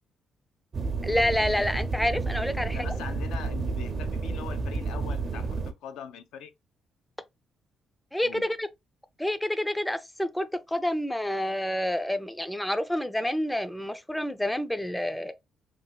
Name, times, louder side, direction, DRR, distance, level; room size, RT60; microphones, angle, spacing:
sound 1, 0.7-5.7, right 4 dB, 50° right, 0.5 m, -31 dB
voice 1, 1.0-2.8 8.1-8.7 9.2-15.3, left 1 dB, 5° left, 0.4 m, -28 dB
voice 2, 2.6-6.5 8.2-8.5, left 8 dB, 90° left, 0.4 m, -42 dB
3.2 x 2.7 x 2.2 m
cardioid pair, 90°, 0 cm